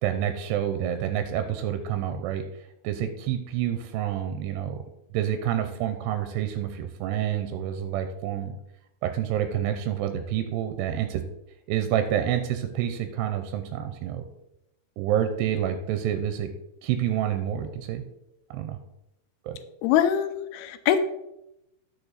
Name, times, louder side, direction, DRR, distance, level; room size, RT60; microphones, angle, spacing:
voice 1, 0.0-2.4 2.8-4.8 5.1-8.5 9.0-11.2 11.7-14.3 15.0-16.5 16.8-18.0 18.5-18.8 19.5-19.6, right 10 dB, 90° right, 7 dB, 2.8 m, -28 dB
voice 2, 19.8-21.0, left 10 dB, 80° left, 10 dB, 2.5 m, -23 dB
11.0 x 6.4 x 4.1 m, 0.84 s
omnidirectional pair, 4.7 m